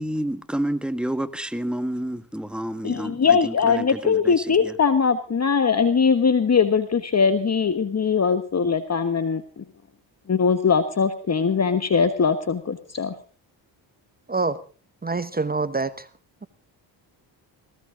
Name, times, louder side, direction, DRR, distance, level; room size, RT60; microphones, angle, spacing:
voice 1, 0.0-4.7, right 1 dB, ahead, 1.5 m, -29 dB
voice 2, 2.8-9.6 10.3-13.1, left 6 dB, 35° left, 1.5 m, -21 dB
voice 3, 15.0-15.9, right 3 dB, 20° right, 0.9 m, -25 dB
18.5 x 17.5 x 3.8 m
cardioid pair, 80°, 45 cm